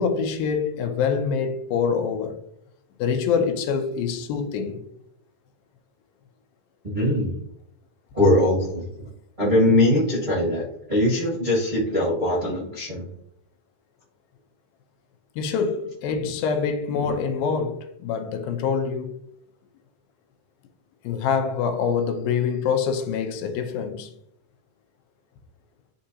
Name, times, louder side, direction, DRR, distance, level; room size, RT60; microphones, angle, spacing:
voice 1, 0.0-2.4 3.0-4.8 15.4-19.2 21.0-24.1, left 6 dB, 85° left, 2.6 m, -25 dB
voice 2, 6.8-7.4 8.1-8.9 9.4-13.1, left 1 dB, 50° right, 0.5 m, -21 dB
9.8 x 3.7 x 2.8 m
omnidirectional pair, 4.1 m